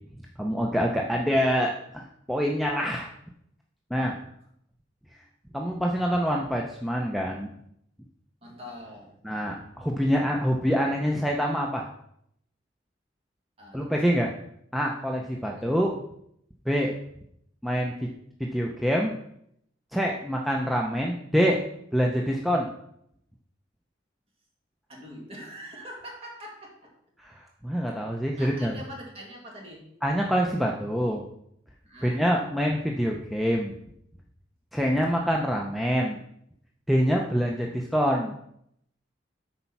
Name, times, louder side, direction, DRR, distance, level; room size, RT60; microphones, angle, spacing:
voice 1, 0.4-3.1 3.9-4.1 5.5-7.5 9.2-11.9 13.7-14.3 14.7-16.0 16.7-16.9 17.6-17.9 18.4-19.1 19.9-21.6 21.9-22.7 27.2-28.7 30.0-31.2 32.0-33.7 34.7-36.2 36.9-38.4, equal, ahead, -1 dB, 0.6 m, -26 dB
voice 2, 8.4-9.1 13.6-14.2 15.3-15.7 24.9-26.9 28.4-29.9 31.8-32.3, equal, 30° right, -1 dB, 2.0 m, -43 dB
8.2 x 4.4 x 5.8 m, 0.73 s
head